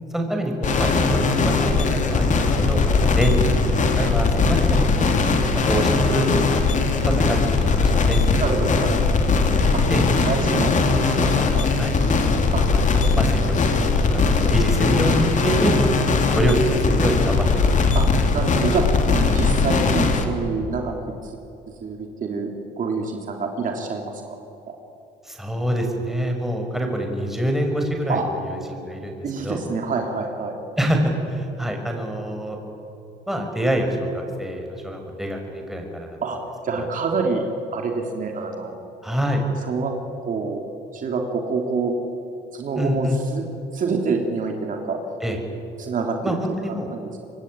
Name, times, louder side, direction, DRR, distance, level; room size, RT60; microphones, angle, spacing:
voice 1, 0.1-5.2 5.5-6.2 7.0-8.4 9.9-11.9 12.7-13.5 13.8-15.9 16.3-17.7 25.2-28.2 28.5-29.6 30.8-32.6 33.3-36.1 36.7-36.8 39.0-39.4 42.8-43.2 45.2-45.4 46.2-46.9, right 1 dB, ahead, 2 dB, 5.9 m, -26 dB
sound 1, 0.6-20.2, left 4 dB, 45° left, 3.4 m, -20 dB
voice 2, 8.4-8.9 9.7-9.8 10.2-11.7 12.5-12.6 17.9-18.1 18.3-18.8 19.1-20.9 21.2-21.4 21.8-22.5 22.8-24.4 24.7-24.8 28.1-28.2 29.2-30.5 36.2-36.4 36.6-37.4 37.7-38.8 39.7-39.9 40.2-40.6 40.9-42.0 42.5-43.5 43.7-45.0 45.8-46.4 46.7-47.1, right 4 dB, 45° right, 2 dB, 3.3 m, -26 dB
26.0 x 23.0 x 9.7 m, 2.9 s
cardioid pair, 110°, 18 cm